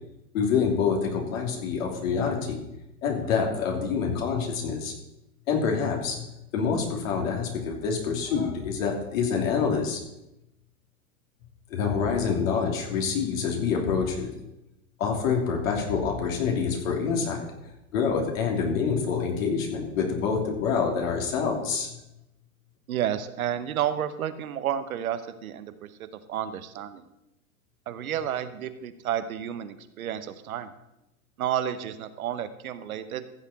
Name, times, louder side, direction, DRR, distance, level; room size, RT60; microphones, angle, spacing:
voice 1, 0.3-2.6 3.0-4.9 5.5-6.2 6.5-10.0 11.7-14.3 15.0-17.5 17.9-21.9, left 6 dB, 65° left, 1 dB, 3.0 m, -26 dB
voice 2, 22.9-27.0 27.9-30.7 31.4-33.2, right 10 dB, 75° right, 11 dB, 1.1 m, -31 dB
15.0 x 7.2 x 4.2 m, 0.90 s
hypercardioid pair, 110°, 43 cm